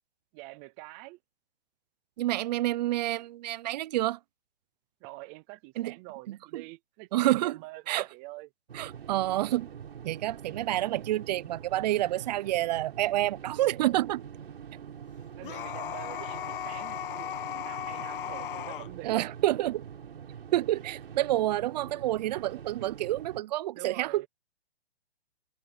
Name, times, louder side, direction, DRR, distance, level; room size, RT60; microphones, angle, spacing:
voice 1, 0.3-1.2 5.0-8.5 15.4-19.2 23.8-24.3, right 22 dB, 10° right, 0.3 m, -45 dB
voice 2, 2.2-4.2 5.8-5.9 6.3-6.6 7.1-7.6 7.9-8.1 8.7-9.7 10.0-14.3 19.0-19.8 20.5-24.3, right 15 dB, 40° right, 0.8 m, -28 dB
sound 1, 8.7-23.4, right 8 dB, 70° right, 7.5 m, -45 dB
sound 2, 15.4-18.9, left 11 dB, 55° left, 1.0 m, -36 dB
hypercardioid pair, 140°, 32 cm